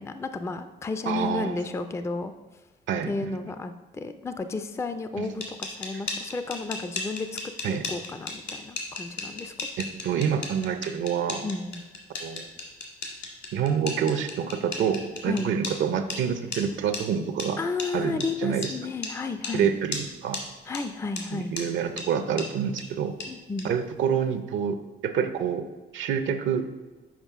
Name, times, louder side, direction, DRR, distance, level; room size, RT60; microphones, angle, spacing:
voice 1, 0.0-2.3 3.1-9.7 11.4-11.8 15.3-15.5 17.6-19.7 20.6-21.5 23.3-23.7, left 3 dB, 15° left, 9 dB, 0.4 m, -32 dB
voice 2, 1.1-1.7 2.9-3.3 5.2-5.3 7.6-7.8 10.0-11.4 12.2-12.5 13.5-17.6 17.9-18.7 19.5-20.4 21.3-23.1 23.6-24.8 25.0-25.6 25.9-26.7, right 7 dB, 70° right, 9 dB, 0.6 m, -27 dB
sound 1, 5.2-15.8 16.1-16.2 16.5-16.6 16.9-17.0 17.4-17.5 17.8-17.9 18.2-18.3 18.6-18.7 19.0-19.1 19.4-19.6 19.9-20.0 20.3-20.4 20.7-20.8 21.2-21.3 21.6-21.7 22.0-22.1 22.4-22.5 22.8-22.9 23.2-23.3 23.6-23.7, left 4 dB, 60° left, 1.9 m, -34 dB
7.3 x 5.2 x 3.6 m, 1.2 s
cardioid pair, 90°, 20 cm